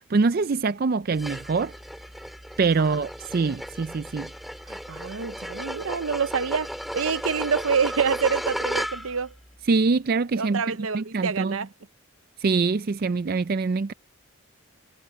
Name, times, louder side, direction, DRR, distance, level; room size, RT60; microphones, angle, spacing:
voice 1, 0.1-1.7 2.6-4.3 9.7-10.6 10.9-11.6 12.4-13.9, right 4 dB, 45° right, 0.4 m, -24 dB
sound 1, 1.2-9.3, equal, ahead, 4.5 m, -34 dB
voice 2, 4.7-6.7 6.9-9.3 10.4-11.7, right 6 dB, 80° right, 0.8 m, -27 dB
head